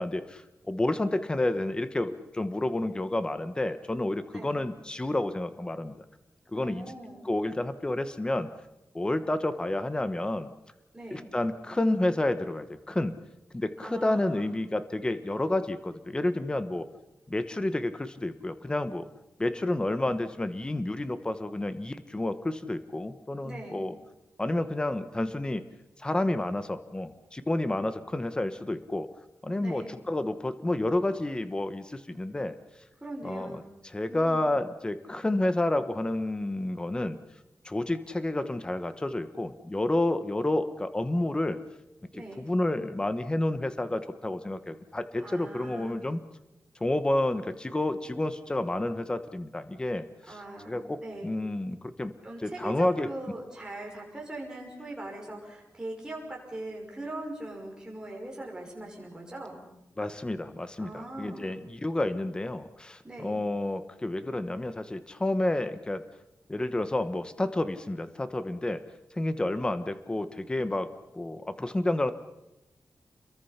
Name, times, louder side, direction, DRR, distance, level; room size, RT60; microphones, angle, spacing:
voice 1, 0.0-6.0 6.5-6.9 7.2-8.5 8.9-10.5 11.1-13.1 13.5-16.9 17.3-19.0 19.4-23.9 24.4-25.6 26.0-29.1 29.4-32.6 33.2-33.6 33.8-37.2 37.6-41.6 42.4-46.2 46.8-50.1 50.7-52.1 52.4-53.1 60.0-66.0 66.5-68.8 69.2-70.9 71.1-72.1, left 1 dB, 15° left, 11 dB, 1.1 m, -30 dB
voice 2, 6.5-7.3 10.9-11.3 13.8-14.6 23.4-23.9 29.6-30.0 33.0-33.7 34.1-34.5 42.1-42.5 45.2-46.0 50.3-51.3 52.2-59.6 60.8-61.7 63.0-63.4, right 1 dB, 15° right, -1 dB, 5.6 m, -41 dB
29.0 x 22.5 x 5.8 m, 0.93 s
wide cardioid pair, 180°, 6 cm